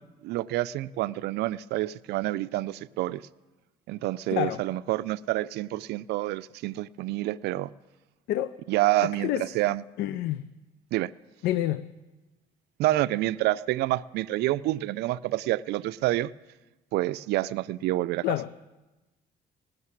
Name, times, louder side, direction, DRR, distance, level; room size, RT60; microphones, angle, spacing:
voice 1, 0.2-3.2 3.9-7.7 8.7-9.8 10.9-11.1 12.8-16.3 16.9-18.2, right 16 dB, 75° right, 0.4 m, -28 dB
voice 2, 4.3-4.6 8.3-8.6 9.0-9.5 10.0-10.4 11.4-11.9 18.2-18.5, left 13 dB, 75° left, 0.5 m, -28 dB
18.0 x 6.6 x 9.7 m
cardioid pair, 110°, 17 cm